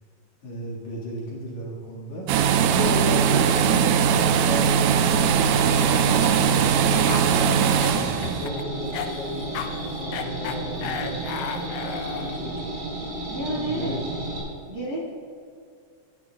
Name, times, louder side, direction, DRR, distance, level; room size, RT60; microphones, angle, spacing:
voice 1, 0.4-2.3 3.0-7.4 7.9-12.7 13.4-14.3, equal, 60° left, -6 dB, 3.1 m, -35 dB
sound 1, 2.3-8.5, right 7 dB, 80° right, 1.9 m, -20 dB
voice 2, 2.7-3.7 13.3-13.9 14.7-15.0, equal, 35° right, -6 dB, 1.8 m, -30 dB
sound 2, 5.1-14.4, right 2 dB, 60° right, 3.7 m, -33 dB
Cough, 5.9-12.5, left 7 dB, 90° left, 2.4 m, -35 dB
15.0 x 10.5 x 2.3 m, 2.3 s
omnidirectional pair, 3.9 m